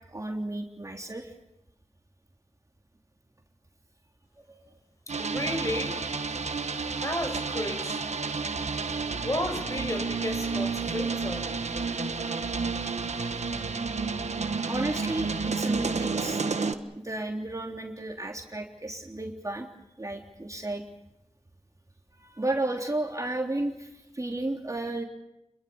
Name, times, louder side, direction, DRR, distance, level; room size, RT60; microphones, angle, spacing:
voice 1, 0.1-1.3 4.5-4.6 14.7-16.4 17.0-19.7 20.0-20.8 22.2-23.9 24.1-25.0, right 2 dB, 30° right, 2 dB, 3.3 m, -33 dB
sound 1, 5.1-16.7, right 4 dB, 85° right, 1.5 m, -31 dB
voice 2, 5.2-6.1 7.0-8.0 9.2-11.5, left 1 dB, 30° left, 5 dB, 6.1 m, -33 dB
28.5 x 22.5 x 7.1 m, 0.88 s
wide cardioid pair, 70°, 11 cm